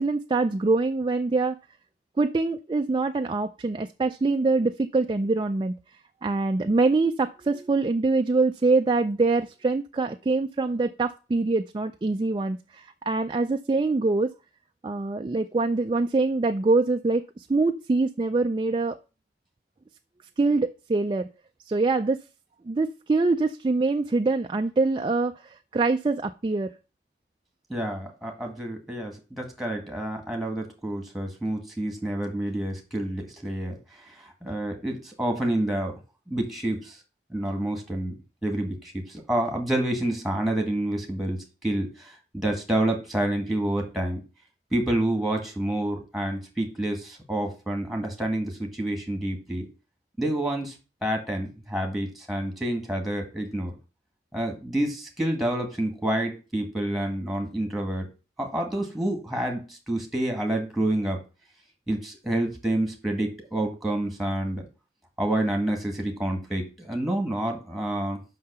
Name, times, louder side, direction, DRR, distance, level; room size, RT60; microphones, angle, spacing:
voice 1, 0.0-1.6 2.2-5.7 6.2-14.3 14.8-19.0 20.4-21.3 21.7-22.2 22.7-26.7, right 3 dB, 25° right, 6 dB, 0.3 m, -24 dB
voice 2, 27.7-33.8 34.4-35.9 36.3-37.0 37.3-38.1 38.4-42.1 42.3-44.2 44.7-49.7 50.2-50.7 51.0-53.7 54.3-58.1 58.4-61.2 61.9-64.6 65.2-68.2, right 1 dB, ahead, 2 dB, 1.7 m, -28 dB
5.7 x 5.6 x 6.7 m, 0.32 s
head